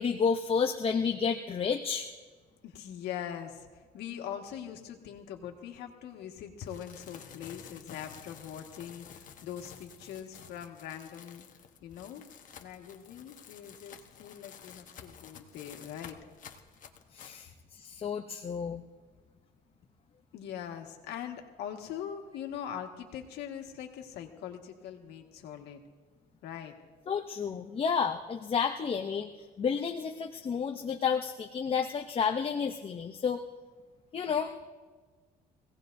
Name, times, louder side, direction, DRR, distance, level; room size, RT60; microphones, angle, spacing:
voice 1, 0.0-2.1 17.1-18.8 27.1-29.3 29.6-33.4 34.1-34.5, left 6 dB, 35° left, 4 dB, 0.7 m, -31 dB
voice 2, 2.6-11.5 11.8-12.3 12.6-16.2 20.3-25.8 26.4-26.7, left 9 dB, 80° left, 3 dB, 1.8 m, -42 dB
sound 1, 6.6-17.4, left 7 dB, 50° left, 1.2 m, -51 dB
24.5 x 17.5 x 2.7 m, 1.4 s
cardioid pair, 110°, 17 cm